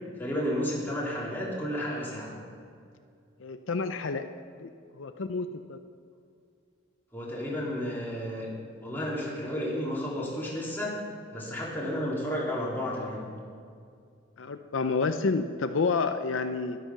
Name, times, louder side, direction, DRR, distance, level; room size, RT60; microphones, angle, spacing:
voice 1, 0.2-2.3 7.1-8.5 8.8-11.0 11.3-13.3, equal, 10° left, -5 dB, 2.9 m, -32 dB
voice 2, 3.4-4.2 4.6-4.7 5.0-5.8 14.4-16.8, left 4 dB, 75° left, 8 dB, 0.6 m, -29 dB
12.5 x 11.5 x 5.8 m, 2.3 s
head